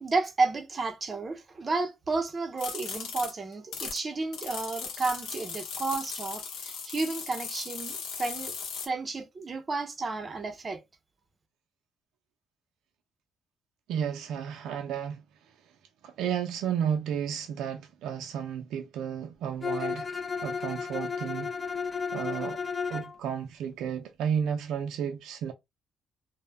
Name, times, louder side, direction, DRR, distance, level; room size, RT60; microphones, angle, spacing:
voice 1, 0.0-8.5 8.8-10.8, right 3 dB, 35° right, 0.5 m, -32 dB
sound 1, 2.6-4.0 4.3-8.9, left 6 dB, 85° left, 0.7 m, -38 dB
voice 2, 13.9-15.2 16.0-20.1 20.4-21.5 22.1-22.6 22.9-25.5, right 8 dB, 85° right, 0.3 m, -32 dB
Bowed string instrument, 19.6-23.2, left 5 dB, 30° left, 0.4 m, -33 dB
2.1 x 2.1 x 3.2 m
cardioid pair, 90°, 0 cm